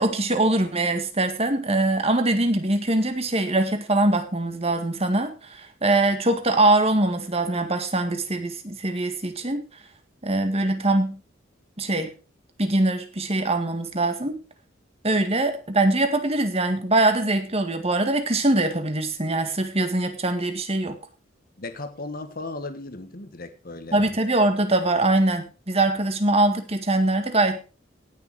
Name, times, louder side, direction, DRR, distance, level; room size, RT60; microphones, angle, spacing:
voice 1, 0.0-9.7 10.2-11.2 11.8-12.1 12.6-14.4 15.0-21.0 23.9-27.6, right 2 dB, 30° right, 1.8 m, -23 dB
voice 2, 21.6-24.1, left 2 dB, 50° left, 1.4 m, -36 dB
17.5 x 6.6 x 4.7 m
head